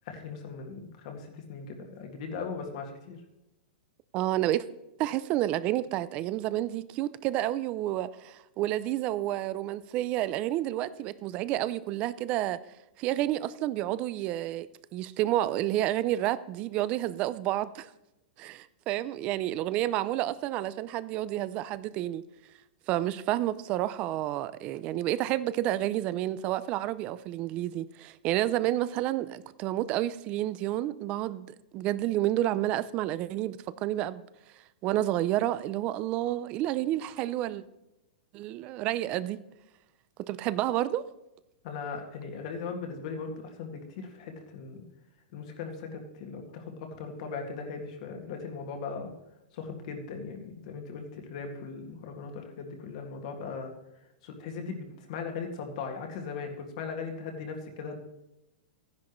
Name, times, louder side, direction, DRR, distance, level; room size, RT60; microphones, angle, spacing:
voice 1, 0.1-3.2 41.6-44.8 45.3-49.1 49.5-53.7 54.2-58.0, left 5 dB, 40° left, 2.0 m, -38 dB
voice 2, 4.1-4.7 5.0-12.6 13.0-14.7 14.9-17.9 18.4-22.2 22.9-31.5 31.7-34.3 34.8-37.6 38.3-39.4 40.2-41.1, right 14 dB, 20° right, 0.4 m, -30 dB
14.5 x 10.5 x 3.1 m
supercardioid pair, 175°, 5 cm